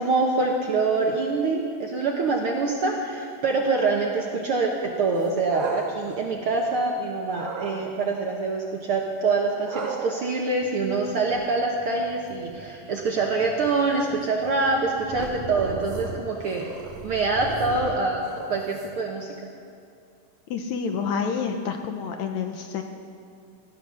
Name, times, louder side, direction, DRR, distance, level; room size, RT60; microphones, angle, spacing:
voice 1, 0.0-16.7 17.0-18.2 18.5-19.3, right 3 dB, 60° right, 0 dB, 1.5 m, -25 dB
sound 1, 5.2-6.9 7.3-7.8 9.7-19.1, right 5 dB, 90° right, 3.7 m, -38 dB
voice 2, 20.5-22.8, left 6 dB, 70° left, 5 dB, 2.0 m, -28 dB
17.5 x 11.5 x 6.3 m, 2.4 s
omnidirectional pair, 3.7 m